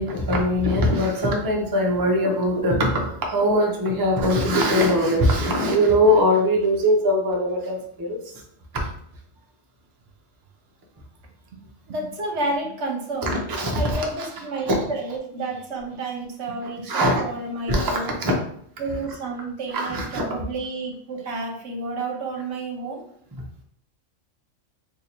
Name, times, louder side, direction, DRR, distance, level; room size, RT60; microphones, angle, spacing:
voice 1, 0.0-8.2 8.7-8.9 13.2-14.3 14.7-14.8 16.9-17.2 17.7-18.4 19.7-20.2, equal, 30° right, 0 dB, 0.4 m, -21 dB
voice 2, 11.9-13.3 13.7-18.2 18.8-23.0, right 2 dB, 65° right, 1 dB, 1.0 m, -30 dB
2.7 x 2.7 x 4.3 m, 0.66 s
omnidirectional pair, 1.3 m